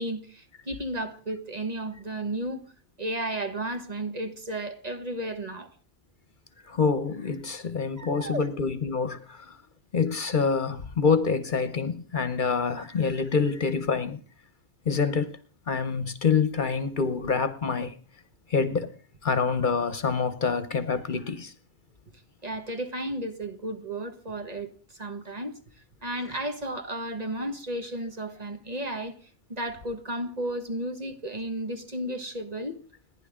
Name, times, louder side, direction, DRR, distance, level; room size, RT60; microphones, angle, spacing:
voice 1, 0.0-2.6 3.0-5.7 8.0-8.5 22.4-25.5 26.0-32.8, right 1 dB, 40° right, 1.7 m, -33 dB
voice 2, 6.7-9.6 9.9-14.2 14.9-15.3 15.7-17.9 18.5-18.9 19.2-21.5, left 5 dB, 50° left, 1.0 m, -26 dB
30.0 x 10.5 x 3.7 m
omnidirectional pair, 1.1 m